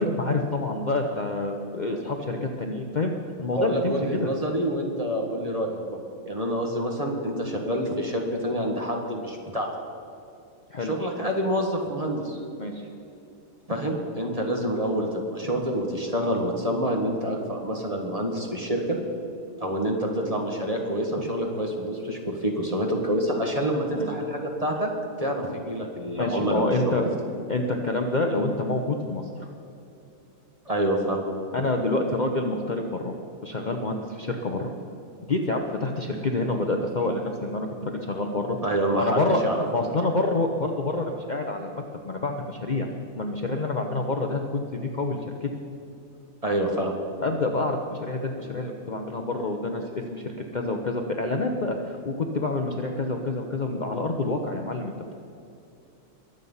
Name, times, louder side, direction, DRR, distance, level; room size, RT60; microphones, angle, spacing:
voice 1, 0.0-3.1 3.4-4.3 10.7-10.9 12.6-12.8 23.9-24.1 26.2-27.1 27.5-29.3 31.5-33.1 33.4-34.7 35.2-38.6 38.9-39.4 39.7-42.9 43.1-45.5 47.2-50.2 50.5-54.9, left 2 dB, 40° left, 3 dB, 0.9 m, -27 dB
voice 2, 3.5-6.0 6.3-9.7 10.8-12.4 13.7-19.0 19.6-24.9 25.2-27.1 30.7-31.2 38.6-39.6 46.4-47.0, right 1 dB, 25° right, 0 dB, 1.9 m, -27 dB
22.0 x 8.0 x 5.6 m, 2.7 s
omnidirectional pair, 1.4 m